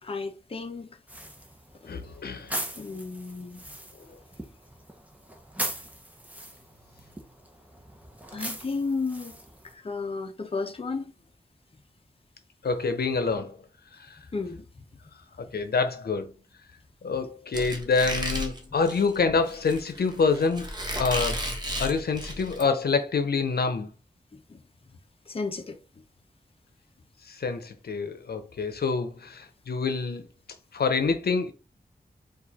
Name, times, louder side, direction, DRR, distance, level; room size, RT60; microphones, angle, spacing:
voice 1, 0.0-1.0 1.8-1.9 2.8-3.6 8.3-9.3 9.6-11.1 14.3-14.6 24.3-24.6 25.3-25.8, left 4 dB, 35° left, 0.7 m, -33 dB
sound 1, 1.1-9.7, right 1 dB, 10° right, 0.8 m, -40 dB
voice 2, 1.9-2.5 12.6-13.6 14.0-14.2 15.4-16.3 17.0-20.7 21.0-21.5 21.8-23.9 27.3-30.3 30.7-31.5, left 4 dB, 80° left, 0.7 m, -26 dB
Squeak, 17.5-22.6, equal, 25° right, 1.2 m, -33 dB
4.7 x 2.4 x 4.1 m
wide cardioid pair, 110°, 16 cm